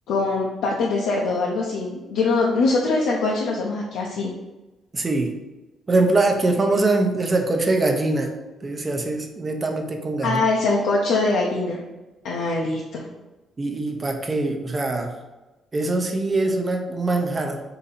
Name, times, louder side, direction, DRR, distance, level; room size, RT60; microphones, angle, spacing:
voice 1, 0.1-4.3 10.2-11.8 12.2-13.0, left 3 dB, 85° left, -3 dB, 0.6 m, -23 dB
voice 2, 4.9-5.4 5.9-8.3 8.6-10.4 13.6-15.1 15.7-17.6, right 2 dB, 30° right, 4 dB, 0.7 m, -23 dB
3.9 x 2.7 x 4.1 m, 1.1 s
cardioid pair, 90°, 0 cm